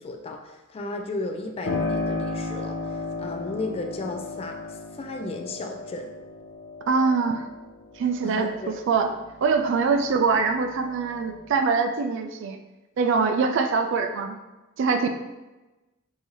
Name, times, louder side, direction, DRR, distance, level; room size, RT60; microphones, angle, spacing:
voice 1, 0.0-6.1 8.2-8.7, left 2 dB, 30° left, 3 dB, 0.3 m, -34 dB
Piano, 1.6-10.1 10.5-11.5, left 3 dB, 60° left, 0.7 m, -34 dB
voice 2, 6.9-7.5 8.0-9.1 9.4-12.6 13.0-14.4 14.8-15.1, right 5 dB, 60° right, 6 dB, 0.3 m, -23 dB
3.8 x 2.6 x 2.9 m, 1.1 s
head